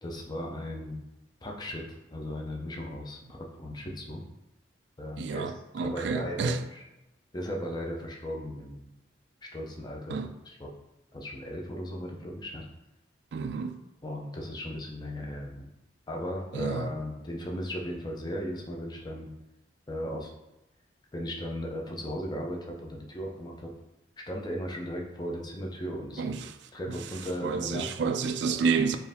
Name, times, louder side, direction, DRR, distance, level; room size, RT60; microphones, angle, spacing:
voice 1, 0.0-1.0 1.4-1.8 2.1-4.2 5.0-5.5 5.8-6.8 7.3-8.9 9.4-10.2 10.5-10.7 11.1-12.7 14.0-15.7 16.1-19.3 19.9-20.3 21.1-23.7 24.3-26.4 26.7-28.1 28.5-28.6, equal, 20° left, 0.5 m, -36 dB
voice 2, 5.2-6.6 10.1-10.3 13.3-13.8 16.5-16.9 26.2-26.5 26.9-29.0, right 5 dB, 70° right, 0.3 m, -30 dB
4.3 x 2.6 x 3.5 m
head